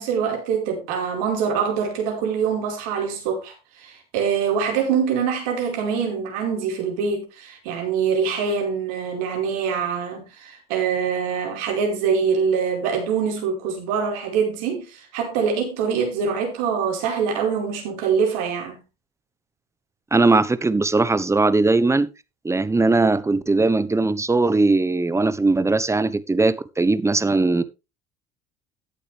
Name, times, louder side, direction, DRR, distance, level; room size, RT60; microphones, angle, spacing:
voice 1, 0.0-18.8, right 6 dB, 75° right, 4.9 m, -24 dB
voice 2, 20.1-22.1 22.4-27.6, right 3 dB, 15° right, 1.2 m, -19 dB
14.0 x 8.3 x 3.5 m
hypercardioid pair, 70°, 19 cm